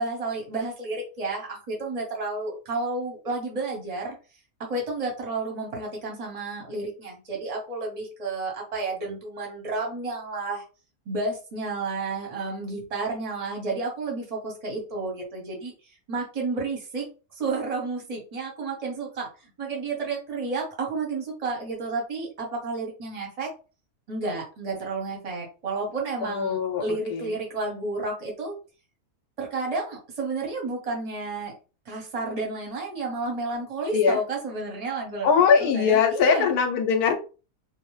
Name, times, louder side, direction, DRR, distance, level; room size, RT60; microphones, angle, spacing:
voice 1, 0.0-4.2 4.7-10.6 11.1-15.7 16.1-17.1 17.4-19.3 19.6-23.5 24.1-28.5 29.4-31.5 31.9-36.5, right 3 dB, 30° right, 0 dB, 0.7 m, -31 dB
voice 2, 26.2-27.3 33.9-34.2 35.2-37.1, left 6 dB, 75° left, 6 dB, 1.0 m, -21 dB
2.6 x 2.0 x 3.1 m, 0.34 s
omnidirectional pair, 1.7 m